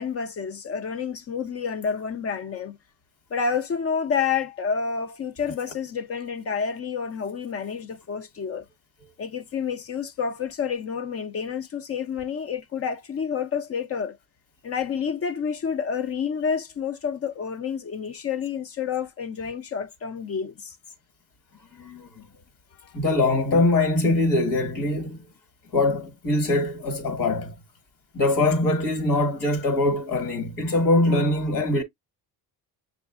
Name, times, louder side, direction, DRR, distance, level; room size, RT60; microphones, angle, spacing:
voice 1, 0.0-2.8 3.3-8.6 9.2-14.2 14.6-20.8 22.8-22.9, left 6 dB, 40° left, 0.5 m, -29 dB
voice 2, 21.7-22.2 22.9-25.2 25.7-27.5 28.1-31.8, left 2 dB, 60° left, 1.6 m, -23 dB
7.0 x 2.5 x 2.3 m
cardioid pair, 115°, 38 cm